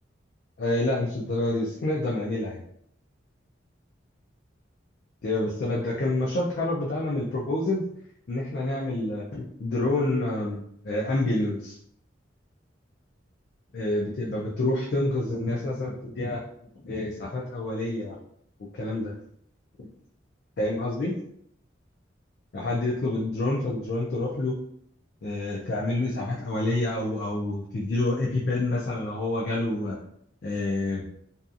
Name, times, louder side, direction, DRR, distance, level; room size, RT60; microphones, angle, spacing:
voice 1, 0.6-2.6 5.2-7.8 8.3-11.8 13.7-16.4 16.8-18.2 18.7-19.1 20.6-21.2 22.5-24.6 25.2-30.0 30.4-31.0, left 2 dB, 55° left, -4 dB, 0.4 m, -28 dB
2.7 x 2.3 x 2.4 m, 0.71 s
head